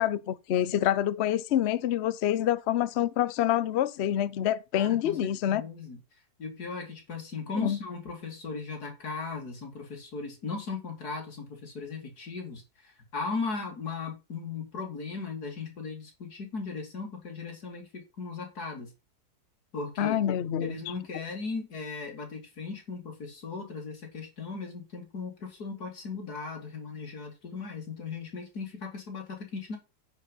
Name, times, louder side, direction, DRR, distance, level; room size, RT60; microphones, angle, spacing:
voice 1, 0.0-5.6 7.6-7.8 20.0-20.8, left 11 dB, 90° left, 0.5 m, -27 dB
voice 2, 4.7-6.0 6.4-18.9 19.7-20.2 20.6-29.8, left 4 dB, 55° left, 3.2 m, -37 dB
9.7 x 5.3 x 5.6 m
omnidirectional pair, 2.0 m